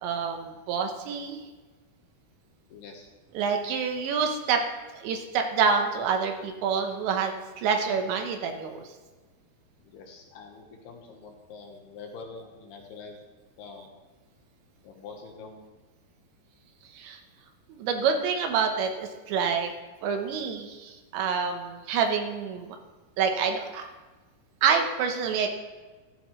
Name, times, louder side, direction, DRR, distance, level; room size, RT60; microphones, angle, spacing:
voice 1, 0.0-1.4 3.3-4.6 4.9-8.8 16.9-17.2 17.7-19.7 20.0-22.8 23.2-23.9 24.6-25.5, right 6 dB, 80° right, 4 dB, 3.3 m, -27 dB
voice 2, 2.7-3.1 9.8-13.2 13.6-13.9 14.8-15.6, left 4 dB, 70° left, 2 dB, 3.0 m, -45 dB
15.0 x 14.0 x 3.2 m, 1.3 s
omnidirectional pair, 5.3 m